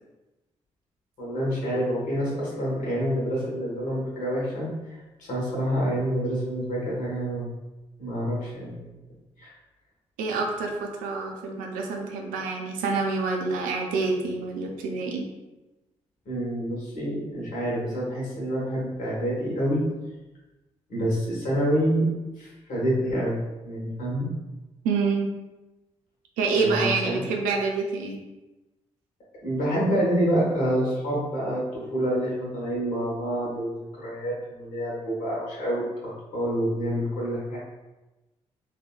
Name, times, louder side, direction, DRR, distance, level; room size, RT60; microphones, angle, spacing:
voice 1, 1.2-5.0 5.3-7.5 8.0-8.9 9.4-9.5 16.2-19.9 20.9-22.1 22.4-23.4 23.6-24.3 26.5-27.2 29.4-37.6, equal, 60° left, -6 dB, 1.0 m, -27 dB
voice 2, 10.2-15.3 24.8-25.3 26.4-28.2, right 4 dB, 70° right, 1 dB, 0.5 m, -27 dB
3.2 x 2.2 x 2.2 m, 1.1 s
hypercardioid pair, 40°, 15 cm